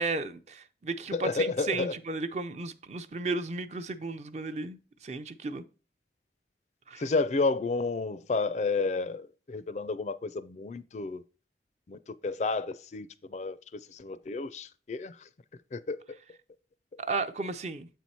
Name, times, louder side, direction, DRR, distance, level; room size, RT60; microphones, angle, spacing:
voice 1, 0.0-5.6 6.9-7.0 17.0-17.9, right 3 dB, 40° right, 0.5 m, -34 dB
voice 2, 1.1-1.9 7.0-11.2 11.9-15.2 15.7-16.2, left 3 dB, 40° left, 0.4 m, -31 dB
7.7 x 4.5 x 4.1 m
head